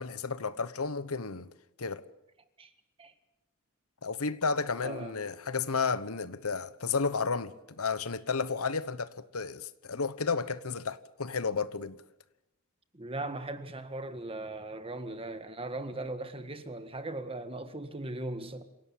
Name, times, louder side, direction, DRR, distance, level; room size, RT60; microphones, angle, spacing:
voice 1, 0.0-1.5 1.8-2.0 4.0-11.9, left 4 dB, 90° left, 1.1 m, -32 dB
voice 2, 4.8-5.2 12.9-18.6, right 2 dB, 25° right, 1.7 m, -38 dB
26.5 x 17.0 x 8.6 m
head